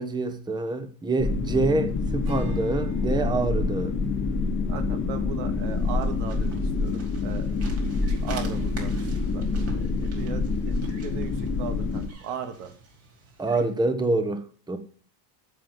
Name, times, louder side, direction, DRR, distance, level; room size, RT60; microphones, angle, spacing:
voice 1, 0.0-3.9 13.4-14.8, right 3 dB, 10° right, 1.1 m, -26 dB
sound 1, 1.2-12.1, left 3 dB, 25° left, 1.3 m, -27 dB
Strum, 2.2-6.9, right 3 dB, 55° right, 4.6 m, -45 dB
voice 2, 4.7-7.6 8.2-12.7, right 8 dB, 75° right, 2.5 m, -38 dB
sound 2, 5.5-13.8, right 4 dB, 30° right, 4.9 m, -48 dB
8.6 x 7.8 x 7.4 m
cardioid pair, 130°, 50 cm